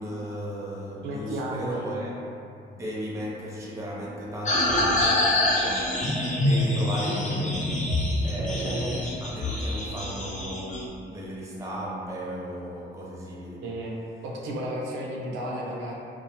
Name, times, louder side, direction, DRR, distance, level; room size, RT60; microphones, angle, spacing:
voice 1, 0.0-2.1 2.6-6.0 6.4-7.8 8.2-13.6, equal, 15° right, -5 dB, 0.6 m, -35 dB
voice 2, 1.0-1.8 8.4-8.9 13.6-14.0 14.2-15.9, right 1 dB, 85° right, -3 dB, 0.5 m, -33 dB
sound 1, 4.5-10.8, left 1 dB, 40° left, 0.6 m, -25 dB
2.4 x 2.1 x 2.8 m, 2.6 s
cardioid pair, 90°, 20 cm